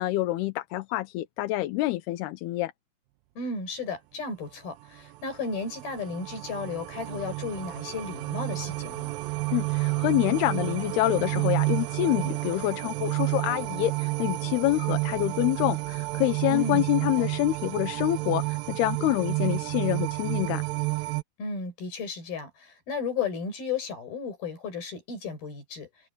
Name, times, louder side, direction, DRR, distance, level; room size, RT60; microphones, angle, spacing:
voice 1, 0.0-2.7 9.5-20.6, left 17 dB, 85° left, 2.8 m, -27 dB
voice 2, 3.4-9.1 16.5-16.9 21.4-25.9, left 4 dB, 65° left, 8.2 m, -34 dB
sound 1, 5.0-21.2, right 23 dB, 90° right, 2.0 m, -30 dB
omnidirectional pair, 4.6 m